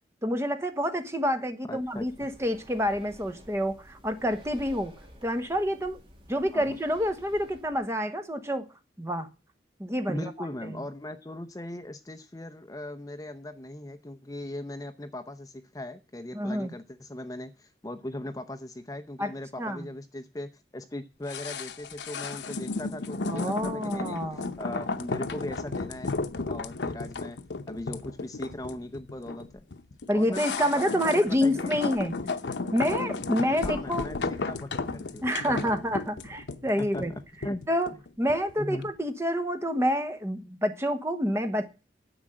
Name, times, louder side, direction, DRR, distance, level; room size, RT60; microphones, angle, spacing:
voice 1, 0.2-4.9 5.2-6.0 6.3-8.6 9.0-9.3 9.8-10.5 16.3-16.7 19.2-19.3 19.6-19.9 23.3-24.5 30.1-32.1 32.7-34.1 35.2-37.1 37.7-37.9 38.2-41.7, equal, 15° right, 1.1 m, -28 dB
voice 2, 1.7-2.3 6.5-6.8 10.1-26.1 26.5-27.4 27.7-29.7 30.1-31.7 33.6-35.8 36.8-37.6 38.6-38.9, left 1 dB, 20° left, 0.6 m, -39 dB
Breathing, 1.7-7.9, equal, 30° right, 2.5 m, -52 dB
sound 1, 21.3-38.5 38.8-38.9, left 3 dB, 80° left, 0.8 m, -34 dB
10.0 x 7.3 x 8.7 m
head